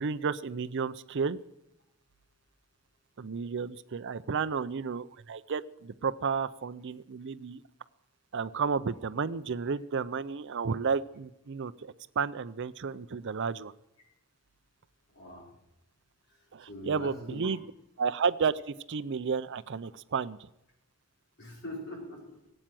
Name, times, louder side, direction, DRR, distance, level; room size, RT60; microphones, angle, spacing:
voice 1, 0.0-1.4 3.2-7.6 8.3-13.7 16.5-17.6 18.0-20.4, right 5 dB, 55° right, 15 dB, 0.5 m, -32 dB
voice 2, 15.1-15.5 16.7-17.5 21.4-22.3, left 1 dB, 55° left, -1 dB, 4.7 m, -42 dB
18.5 x 8.9 x 7.6 m, 0.86 s
head